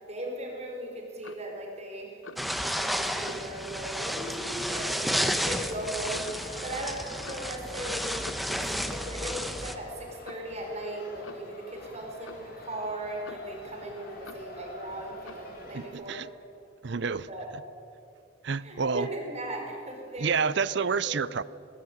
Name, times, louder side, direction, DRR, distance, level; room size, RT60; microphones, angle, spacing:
voice 1, 0.1-8.6 8.9-16.2 17.3-17.5 18.6-21.1, right 1 dB, 35° right, 4.9 m, -38 dB
Clock, 1.2-1.5 2.2-2.5 3.2-3.5 4.2-4.6 5.2-5.5 6.2-6.5 7.2-7.6 8.2-8.6 9.2-9.6 10.3-10.5 11.2-11.5 12.3-12.5 13.2-13.6 14.3-14.5 15.3-15.5, left 4 dB, 85° left, 1.0 m, -47 dB
sound 1, 2.4-9.7, equal, ahead, 1.1 m, -32 dB
sound 2, 6.2-15.9, left 1 dB, 50° left, 5.1 m, -47 dB
voice 2, 15.7-16.3 16.8-17.3 18.4-19.1 20.2-21.4, right 5 dB, 60° right, 0.6 m, -28 dB
20.0 x 20.0 x 9.4 m
head